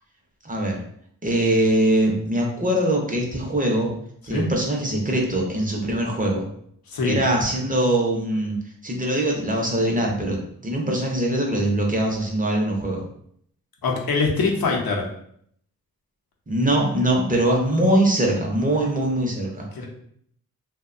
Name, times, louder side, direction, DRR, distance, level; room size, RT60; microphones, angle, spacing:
voice 1, 0.4-0.8 1.2-3.9 4.3-6.5 7.0-8.6 8.8-13.0 16.5-19.7, right 1 dB, 25° right, -1 dB, 0.5 m, -22 dB
voice 2, 6.9-7.2 13.8-15.1 19.7-19.8, left 4 dB, 80° left, 0 dB, 0.6 m, -23 dB
2.7 x 2.1 x 2.4 m, 0.66 s
wide cardioid pair, 95°, 35 cm